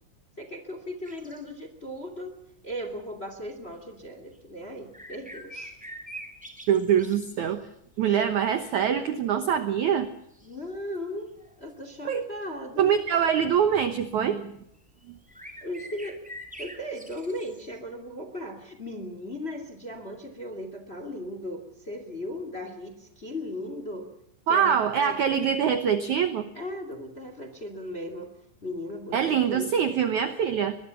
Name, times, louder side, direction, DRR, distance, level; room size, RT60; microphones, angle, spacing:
voice 1, 0.4-2.4 2.6-5.8 8.0-8.2 8.6-8.7 10.4-11.3 11.6-12.9 15.6-16.2 16.6-24.1 24.5-25.2 26.5-28.3 28.6-29.7, left 1 dB, 20° left, 7 dB, 1.8 m, -37 dB
sound 1, 1.0-1.4 3.4-3.5 4.3-4.4 4.9-7.7 8.4-8.8 9.3-9.4 10.3-10.8 11.4-11.7 13.6-13.8 14.9-15.0 15.2-17.8, equal, ahead, 1.9 m, -44 dB
voice 2, 6.7-7.7 8.0-10.1 12.0-12.3 12.8-14.5 24.5-26.5 29.1-30.8, right 8 dB, 75° right, 10 dB, 1.7 m, -24 dB
22.5 x 20.5 x 7.0 m, 0.77 s
omnidirectional pair, 5.1 m